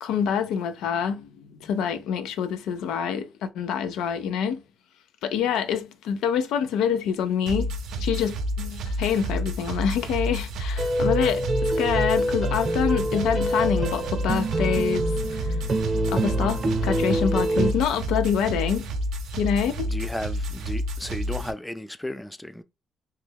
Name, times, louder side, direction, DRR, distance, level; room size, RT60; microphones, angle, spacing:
voice 1, 0.0-4.6 5.2-7.7 8.0-15.1 15.3-15.6 16.1-18.9 19.4-19.9, left 8 dB, 90° left, 0.4 m, -26 dB
sound 1, 7.5-21.5, equal, 80° right, 0.5 m, -30 dB
sound 2, 10.8-17.7, right 1 dB, 45° right, 0.6 m, -26 dB
voice 2, 19.9-22.6, left 1 dB, 10° left, 0.3 m, -34 dB
3.1 x 2.2 x 3.3 m
cardioid pair, 90°, 0 cm